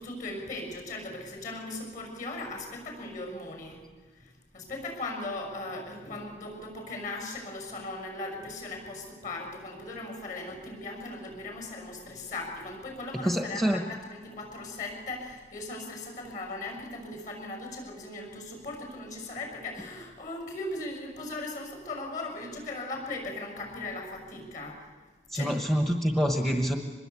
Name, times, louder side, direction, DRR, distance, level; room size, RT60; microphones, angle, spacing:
voice 1, 0.0-3.8 4.1-24.9 25.3-25.5, left 2 dB, 45° left, 2 dB, 6.7 m, -38 dB
voice 2, 13.1-13.8 25.3-26.8, equal, ahead, 4 dB, 1.1 m, -26 dB
24.5 x 21.5 x 8.3 m, 1.4 s
head